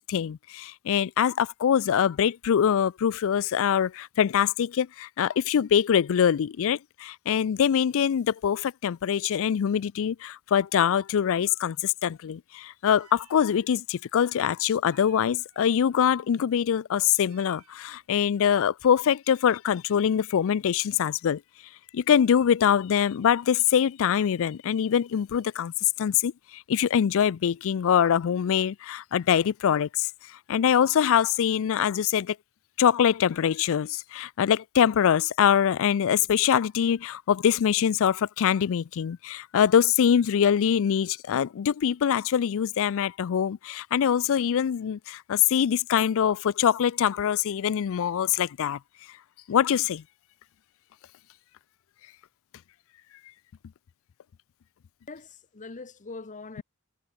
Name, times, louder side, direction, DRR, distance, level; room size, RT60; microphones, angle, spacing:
voice 1, 0.1-21.4 21.9-25.7 26.0-30.1 30.5-32.4 32.8-48.8 49.5-50.0, left 8 dB, 65° left, 0.4 m, -24 dB
Meow, 12.9-13.6 14.8-15.7 17.0-18.1, right 8 dB, 90° right, 3.7 m, -59 dB
voice 2, 55.1-56.6, left 3 dB, 35° left, 0.9 m, -42 dB
head